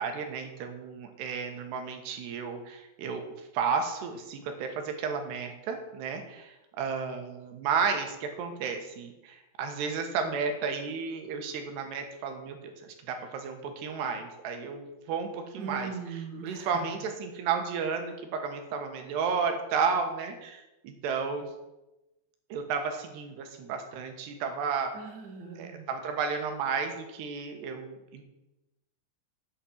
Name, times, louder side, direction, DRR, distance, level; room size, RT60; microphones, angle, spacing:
voice 1, 0.0-3.3 3.5-15.9 16.4-21.5 22.5-24.9 25.6-28.2, right 5 dB, 85° right, 5 dB, 3.5 m, -32 dB
voice 2, 15.6-16.8 24.9-25.9, right 5 dB, 35° right, 1 dB, 1.9 m, -40 dB
8.8 x 8.5 x 7.3 m, 0.97 s
omnidirectional pair, 4.7 m